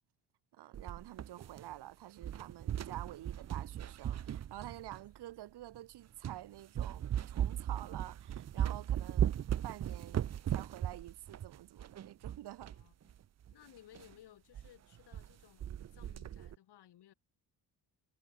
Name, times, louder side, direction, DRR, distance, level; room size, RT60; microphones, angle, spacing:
voice 1, 0.5-9.3 9.6-12.7, right 14 dB, 75° right, 1.5 m, -49 dB
sound 1, 0.7-1.9 2.2-5.2 5.7-5.8 6.2-6.4 6.8-12.8 13.1-13.2 13.4-13.5 14.0-14.1 14.5-14.7 14.9-15.3 15.6-16.6, right 10 dB, 40° right, 0.7 m, -37 dB
voice 2, 12.7-13.1 13.5-17.1, left 12 dB, 75° left, 5.4 m, -60 dB
cardioid pair, 135°, 40 cm